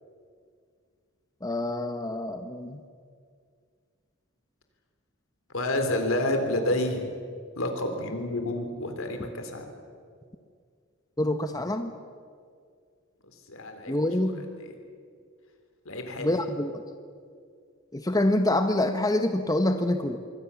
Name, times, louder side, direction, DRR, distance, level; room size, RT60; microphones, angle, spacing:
voice 1, 1.4-2.8 11.2-11.9 13.9-14.5 16.2-16.8 17.9-20.2, left 1 dB, 15° left, 7 dB, 1.1 m, -26 dB
voice 2, 5.5-7.1 7.6-9.6 13.5-14.1 14.6-14.7 15.9-16.4, left 1 dB, 75° left, 6 dB, 3.9 m, -29 dB
26.0 x 23.0 x 7.2 m, 2.1 s
head